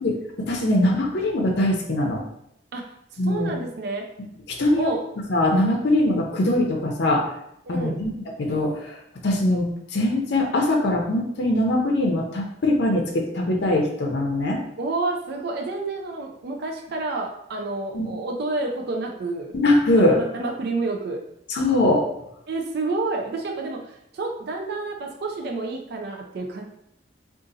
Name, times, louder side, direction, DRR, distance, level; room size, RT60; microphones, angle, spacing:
voice 1, 0.5-2.2 3.2-3.5 4.5-4.9 5.3-7.3 7.7-8.1 8.4-9.0 9.2-14.6 17.9-18.1 19.5-20.2 21.5-22.0, left 1 dB, 65° left, 0 dB, 0.5 m, -22 dB
voice 2, 3.2-4.0 4.8-5.0 7.7-8.0 14.8-19.5 20.0-21.2 22.5-23.8 24.1-26.6, right 3 dB, 60° right, 3 dB, 0.4 m, -29 dB
2.6 x 2.4 x 3.8 m, 0.77 s
head